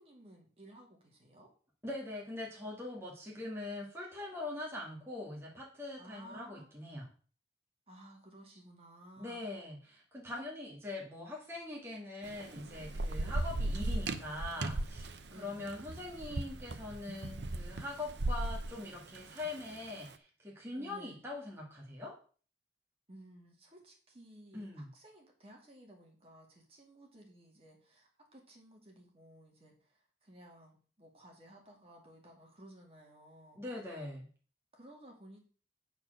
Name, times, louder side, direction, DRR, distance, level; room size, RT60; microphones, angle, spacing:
voice 1, 0.0-1.5 6.0-6.7 7.9-9.4 10.3-10.4 13.2-13.6 15.3-15.8 20.8-21.2 23.1-33.6 34.7-35.4, right 1 dB, 35° right, 0 dB, 2.2 m, -56 dB
voice 2, 1.8-7.1 9.2-22.2 24.5-24.9 33.5-34.3, left 2 dB, 15° right, -3 dB, 2.0 m, -42 dB
Thunder / Rain, 12.2-19.9, right 2 dB, 80° right, 0.7 m, -37 dB
9.0 x 4.5 x 6.5 m, 0.41 s
head